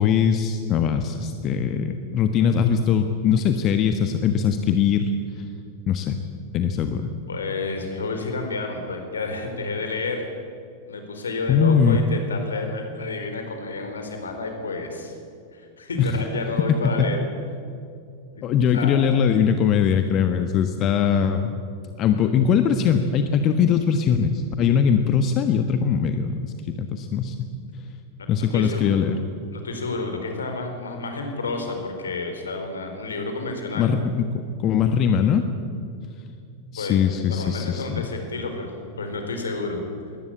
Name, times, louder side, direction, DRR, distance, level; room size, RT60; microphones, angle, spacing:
voice 1, 0.0-5.1 5.4-5.5 5.9-6.2 6.5-7.1 11.5-12.0 16.0-16.2 16.7-17.1 18.4-21.5 22.0-27.5 28.3-29.2 33.7-35.5 36.7-38.0, left 7 dB, 35° left, 7 dB, 1.3 m, -21 dB
voice 2, 7.3-10.2 10.9-15.1 15.5-17.2 18.3-18.5 18.7-19.0 28.4-28.9 29.5-33.9 36.8-39.8, left 3 dB, 70° left, 5 dB, 4.2 m, -30 dB
22.0 x 18.5 x 8.6 m, 2.4 s
figure-of-eight pair, 90°, 0 cm